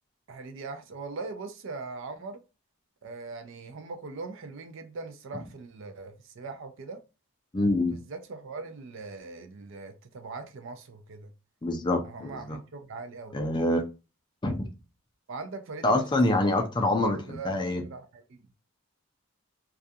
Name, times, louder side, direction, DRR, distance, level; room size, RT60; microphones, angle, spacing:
voice 1, 0.3-2.4 3.0-7.0 7.6-11.3 12.0-13.4 15.3-16.1 16.4-18.4, right 3 dB, 60° right, 0.4 m, -40 dB
voice 2, 7.5-7.9 11.6-12.6 13.3-13.8 14.4-14.7 15.8-17.8, left 2 dB, 20° left, 0.4 m, -26 dB
2.3 x 2.3 x 2.6 m
head